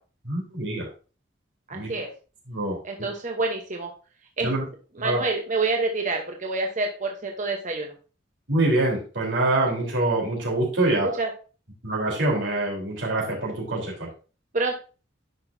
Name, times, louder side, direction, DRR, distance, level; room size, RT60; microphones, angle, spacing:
voice 1, 0.3-0.9 1.7-1.9 2.5-2.8 4.4-4.6 5.0-5.2 8.5-11.1 11.8-14.1, right 2 dB, 90° right, -3 dB, 3.8 m, -25 dB
voice 2, 1.7-2.1 2.8-3.9 4.4-4.5 5.0-7.9 11.2-11.3 14.5-14.7, right 3 dB, 45° right, 2 dB, 1.0 m, -27 dB
10.5 x 6.0 x 2.7 m, 0.36 s
head